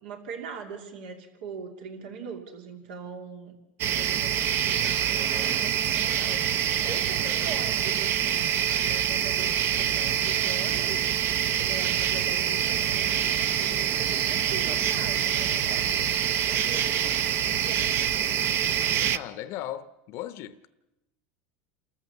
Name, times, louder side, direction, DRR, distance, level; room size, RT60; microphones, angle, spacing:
voice 1, 0.0-3.6 3.8-11.1 11.6-15.9 16.5-17.1 17.6-18.4, right 5 dB, 80° right, 2.7 m, -41 dB
sound 1, 3.8-19.2, right 9 dB, 50° right, 0.7 m, -26 dB
voice 2, 19.0-20.7, left 12 dB, 55° left, 0.8 m, -37 dB
29.0 x 14.0 x 7.0 m
supercardioid pair, 105°, 5 cm